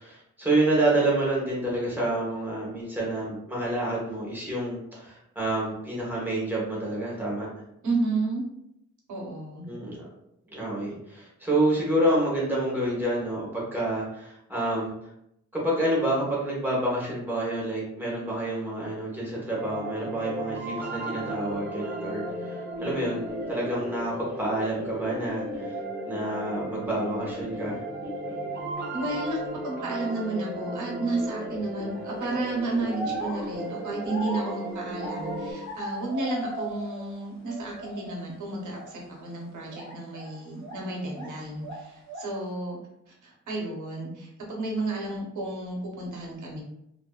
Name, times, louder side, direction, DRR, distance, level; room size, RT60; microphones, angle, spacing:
voice 1, 0.0-7.5 9.6-10.1 10.5-14.9 15.5-25.8 26.1-27.8, right 1 dB, 5° right, -5 dB, 1.0 m, -28 dB
voice 2, 7.8-8.4 9.1-9.6 28.9-42.8 43.1-46.6, right 2 dB, 90° right, -2 dB, 0.9 m, -32 dB
sound 1, 19.5-35.5, right 1 dB, 35° right, 0.8 m, -35 dB
sound 2, 31.9-32.2 32.8-37.2 37.5-38.2 38.7-38.9 39.7-41.4 41.6-42.4, right 1 dB, 65° left, 1.0 m, -38 dB
2.6 x 2.5 x 2.3 m, 0.79 s
wide cardioid pair, 120°, 29 cm